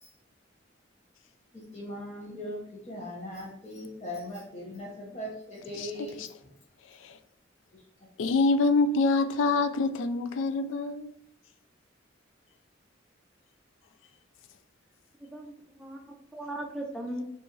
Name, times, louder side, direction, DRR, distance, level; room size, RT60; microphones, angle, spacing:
voice 1, 1.5-6.5 7.7-8.1, left 1 dB, 35° left, 0.9 m, -40 dB
voice 2, 8.2-11.1, left 3 dB, 85° left, 0.4 m, -25 dB
voice 3, 15.2-17.2, right 1 dB, ahead, 0.6 m, -38 dB
4.6 x 2.5 x 3.1 m
head